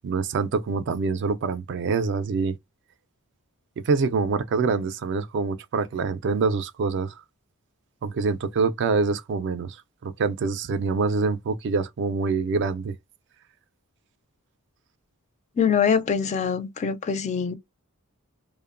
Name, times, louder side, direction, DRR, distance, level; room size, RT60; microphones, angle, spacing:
voice 1, 0.0-2.5 3.8-7.1 8.0-12.9, right 4 dB, 55° right, 0.3 m, -25 dB
voice 2, 15.6-17.6, left 6 dB, 30° left, 0.3 m, -23 dB
2.8 x 2.1 x 2.4 m
head